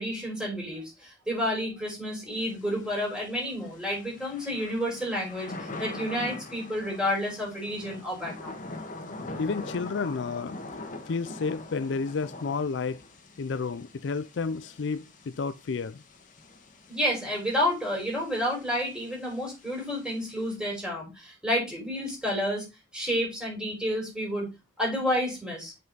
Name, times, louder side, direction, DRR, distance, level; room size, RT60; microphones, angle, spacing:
voice 1, 0.0-8.6 16.9-22.6 22.9-24.5 24.8-25.7, equal, 5° right, 4.9 m, -30 dB
Thunder / Rain, 2.3-20.6, left 2 dB, 45° left, 1.6 m, -43 dB
voice 2, 9.4-10.6 11.1-13.0 13.4-16.0, left 4 dB, 65° left, 0.4 m, -31 dB
7.7 x 5.6 x 3.9 m
head